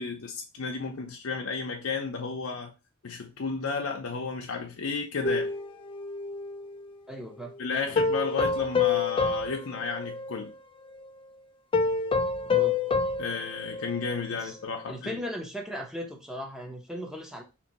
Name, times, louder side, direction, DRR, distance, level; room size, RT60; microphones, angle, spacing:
voice 1, 0.0-2.7 3.0-5.5 7.6-10.5 13.2-15.2, left 5 dB, 85° left, 0.6 m, -33 dB
sound 1, 5.2-6.8 8.0-10.5 10.9-11.1 11.7-14.3 14.7-14.8, left 4 dB, 25° left, 0.3 m, -28 dB
voice 2, 7.1-7.5 7.9-8.0 12.4-12.8 14.3-14.6 14.9-17.4, equal, 5° right, 0.7 m, -37 dB
2.9 x 2.6 x 4.0 m
head